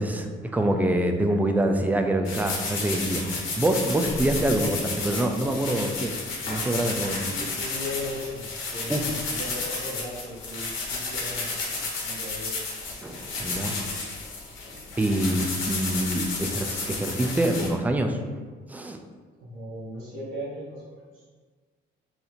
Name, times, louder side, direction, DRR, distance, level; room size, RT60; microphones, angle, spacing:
voice 1, 0.0-6.1 6.5-7.3 8.9-9.1 13.0-13.7 15.0-18.2 18.7-19.0, right 1 dB, 10° right, 5 dB, 0.3 m, -25 dB
sound 1, 2.2-17.7, left 3 dB, 80° left, 0.9 m, -32 dB
voice 2, 7.2-12.5 19.4-21.2, left 1 dB, 85° right, -7 dB, 1.0 m, -38 dB
2.8 x 2.5 x 4.1 m, 1.5 s
cardioid pair, 90°, 20 cm